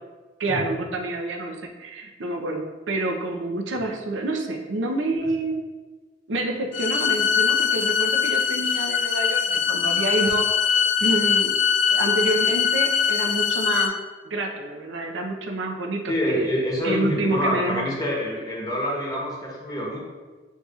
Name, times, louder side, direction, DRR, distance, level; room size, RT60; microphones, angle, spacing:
voice 1, 0.4-5.6 6.3-10.5 11.0-11.6 11.9-13.9 14.2-16.5 16.8-17.9, right 2 dB, 75° right, 2 dB, 0.7 m, -28 dB
sound 1, 6.7-13.9, left 7 dB, 75° left, 0.5 m, -22 dB
voice 2, 16.1-20.0, left 1 dB, 20° left, -3 dB, 0.9 m, -26 dB
8.2 x 2.7 x 2.4 m, 1.3 s
head